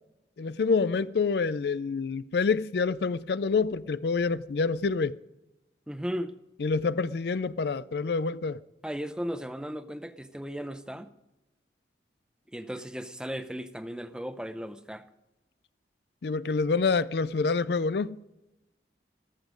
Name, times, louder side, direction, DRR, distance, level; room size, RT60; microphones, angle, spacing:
voice 1, 0.4-5.2 6.6-8.6 16.2-18.2, left 4 dB, 65° left, 0.4 m, -27 dB
voice 2, 5.9-6.3 8.8-11.1 12.5-15.0, equal, 5° right, 0.6 m, -36 dB
14.5 x 14.0 x 5.1 m
head